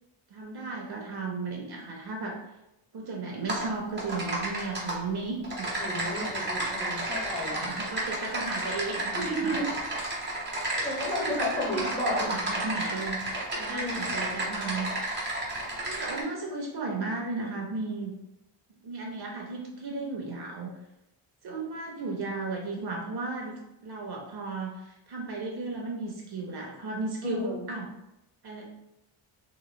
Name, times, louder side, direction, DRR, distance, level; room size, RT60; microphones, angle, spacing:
voice 1, 0.3-2.4 2.9-5.7 7.1-9.6 10.7-14.9 15.8-18.1 18.8-20.7 21.4-27.9 28.4-28.7, right 3 dB, 50° right, -1 dB, 0.6 m, -35 dB
Typing, 3.5-3.7 4.0-4.9 5.4-16.2, right 1 dB, 20° right, 1.0 m, -32 dB
voice 2, 5.8-7.8 9.1-9.7 10.8-12.4 13.7-14.1 27.2-27.6, equal, 10° left, -5 dB, 0.9 m, -32 dB
3.0 x 3.0 x 2.2 m, 0.90 s
cardioid pair, 100°, 50 cm